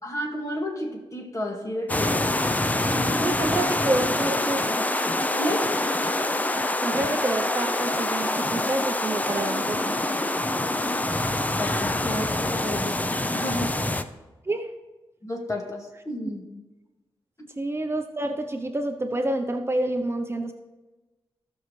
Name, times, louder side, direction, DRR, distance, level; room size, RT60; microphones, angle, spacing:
voice 1, 0.0-2.4 2.8-3.5 5.3-5.7 11.6-13.0 13.2-13.7 15.2-15.8 16.1-16.4 17.4-17.5, left 1 dB, 35° left, 1 dB, 2.0 m, -31 dB
sound 1, 1.9-14.0, left 1 dB, 15° left, 0.5 m, -25 dB
voice 2, 3.1-4.7 6.8-10.0 14.5-14.7 17.6-20.5, right 1 dB, 25° right, 5 dB, 0.7 m, -28 dB
16.0 x 6.3 x 3.2 m, 1.1 s
cardioid pair, 80°, 10 cm